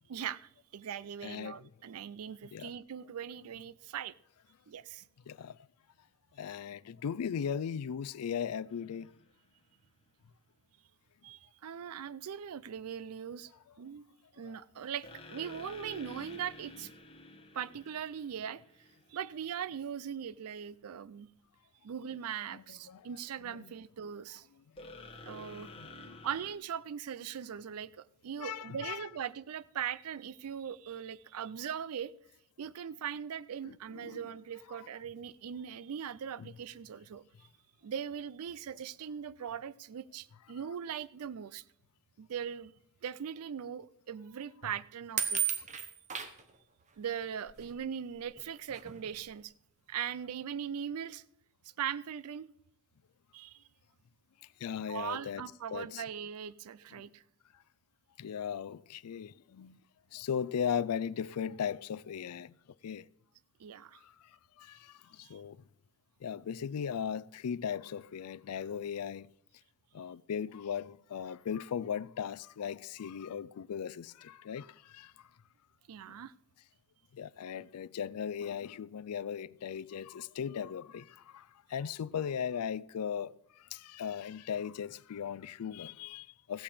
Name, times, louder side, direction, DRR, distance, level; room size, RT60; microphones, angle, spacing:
voice 1, 0.1-4.1 4.7-5.0 11.2-13.5 13.8-14.0 14.4-16.9 17.5-18.6 19.1-21.3 21.8-24.5 25.2-25.7 26.2-32.1 32.6-37.2 37.8-41.6 42.2-42.7 43.0-45.4 47.0-49.5 49.9-51.2 51.8-52.5 53.3-53.6 54.9-57.2 63.6-64.0 65.2-65.4 75.9-76.3, right 8 dB, 80° right, 0.4 m, -40 dB
voice 2, 1.2-1.7 2.5-2.7 5.3-5.6 6.4-9.1 14.4-14.6 22.5-23.0 23.4-23.7 25.8-25.9 28.4-29.1 33.7-34.2 34.7-34.8 36.4-36.5 54.6-55.4 55.7-56.0 58.2-59.8 60.1-62.5 62.8-63.1 64.0-64.1 64.6-65.6 66.2-69.3 69.9-75.1 76.1-76.2 77.1-86.6, left 7 dB, 90° left, 0.4 m, -38 dB
sound 1, 8.7-9.3 15.0-19.2 24.8-26.5, left 2 dB, 25° left, 1.7 m, -50 dB
sound 2, 45.2-46.4 47.5-47.6 48.4-48.5 48.7-49.1, right 8 dB, 35° right, 1.0 m, -33 dB
15.0 x 8.6 x 5.0 m
head